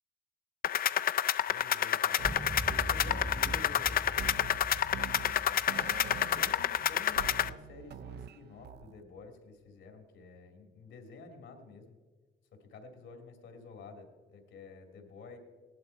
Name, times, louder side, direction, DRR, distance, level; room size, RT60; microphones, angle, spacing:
sound 1, 0.6-7.5, left 10 dB, 50° left, 0.4 m, -29 dB
voice 1, 1.5-4.1 4.7-5.7 6.3-12.0 12.6-15.4, left 3 dB, 75° left, 5 dB, 2.4 m, -51 dB
sound 2, 2.2-7.6, equal, 5° right, 0.5 m, -42 dB
sound 3, 2.2-9.0, right 8 dB, 55° right, 0.5 m, -46 dB
17.0 x 11.0 x 4.4 m, 1.4 s
cardioid pair, 90°, 20 cm